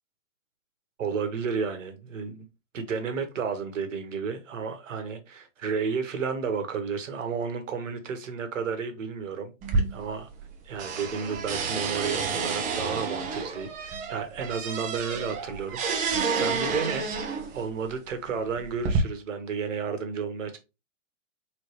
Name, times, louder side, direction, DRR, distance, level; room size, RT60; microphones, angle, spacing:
voice 1, 1.0-2.5 2.7-9.5 9.9-10.3 10.6-17.1 17.5-20.6, right 5 dB, 70° right, 1.3 m, -32 dB
sound 1, 9.6-10.5 10.8-17.6 18.4-19.0, right 5 dB, 20° right, 0.6 m, -30 dB
3.9 x 3.2 x 3.1 m
hypercardioid pair, 130°, 39 cm